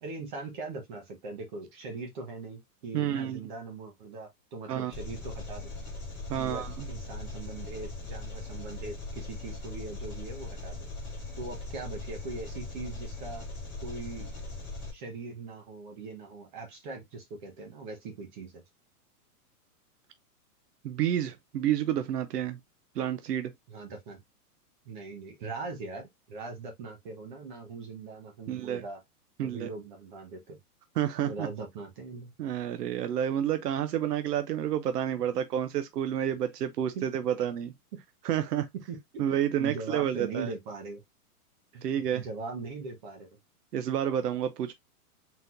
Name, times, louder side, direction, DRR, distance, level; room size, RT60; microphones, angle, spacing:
voice 1, 0.0-5.7 6.3-10.8 11.3-13.4 13.8-14.3 14.9-18.6 23.7-24.2 24.8-29.0 29.4-30.6 31.2-32.3 36.9-37.0 38.9-39.2 39.6-41.0 41.7-43.3, right 3 dB, 30° right, 1.3 m, -40 dB
voice 2, 2.9-3.4 4.7-4.9 6.3-6.9 20.8-22.6 22.9-23.5 28.5-28.8 29.4-29.7 31.0-31.5 32.4-37.7 38.2-38.7 39.2-40.5 41.8-42.2 43.7-44.7, right 10 dB, 90° right, 0.8 m, -29 dB
Engine, 4.9-14.9, left 2 dB, ahead, 0.4 m, -40 dB
4.1 x 4.1 x 2.6 m
hypercardioid pair, 170°, 46 cm